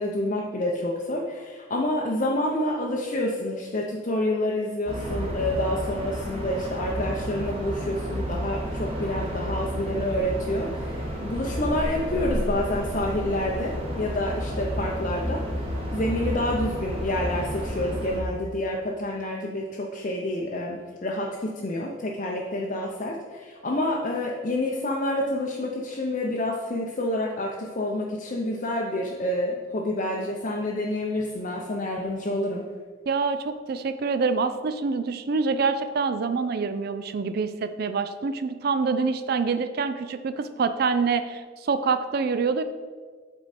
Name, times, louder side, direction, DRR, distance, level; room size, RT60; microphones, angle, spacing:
voice 1, 0.0-15.4 15.9-32.6, left 1 dB, 40° left, -1 dB, 0.6 m, -28 dB
sound 1, 4.9-18.2, equal, 30° right, 1.2 m, -31 dB
voice 2, 33.1-42.6, right 4 dB, 50° right, 12 dB, 0.4 m, -26 dB
8.0 x 4.6 x 4.2 m, 1.5 s
head